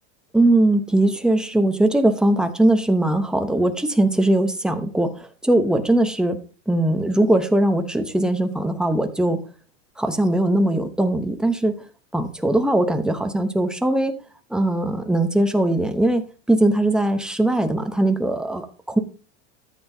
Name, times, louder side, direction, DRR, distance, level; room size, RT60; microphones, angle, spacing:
voice 1, 0.3-6.4 6.7-9.4 10.0-11.8 12.1-14.2 14.5-19.0, right 1 dB, ahead, 6 dB, 0.7 m, -20 dB
13.0 x 7.9 x 2.7 m, 0.37 s
supercardioid pair, 150°, 36 cm